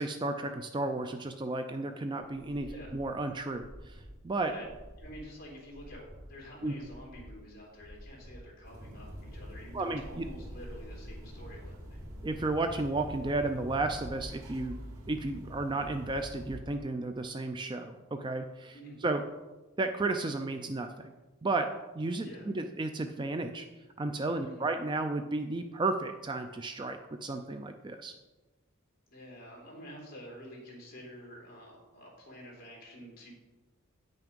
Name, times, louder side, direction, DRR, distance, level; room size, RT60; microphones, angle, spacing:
voice 1, 0.0-2.7 2.9-4.0 4.2-4.5 6.6-6.7 9.7-10.2 12.2-14.8 15.1-18.8 19.0-19.2 19.8-21.1 21.4-21.7 21.9-23.7 24.0-28.1, right 2 dB, 20° right, 6 dB, 0.3 m, -33 dB
sound 1, 2.3-14.3, equal, 10° left, 3.1 m, -51 dB
voice 2, 5.0-12.0 18.7-19.1 22.2-22.5 24.3-24.7 29.1-33.3, equal, 40° left, -3 dB, 3.0 m, -48 dB
sound 2, 8.6-16.6, equal, 85° right, 2.2 m, -45 dB
8.9 x 5.9 x 5.2 m, 1.2 s
head